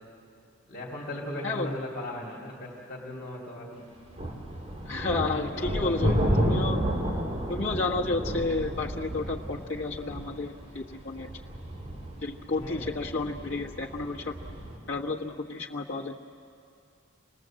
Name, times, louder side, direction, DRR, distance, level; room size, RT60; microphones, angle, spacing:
voice 1, 0.7-3.8 5.5-6.6 12.6-12.9, left 1 dB, 50° left, -2 dB, 3.0 m, -38 dB
voice 2, 1.4-1.8 4.8-6.8 7.5-11.3 12.2-14.3 14.9-16.1, left 3 dB, 85° left, -3 dB, 1.5 m, -31 dB
sound 1, 4.1-14.8, equal, 30° right, 3.1 m, -31 dB
26.5 x 19.5 x 7.6 m, 2.4 s
head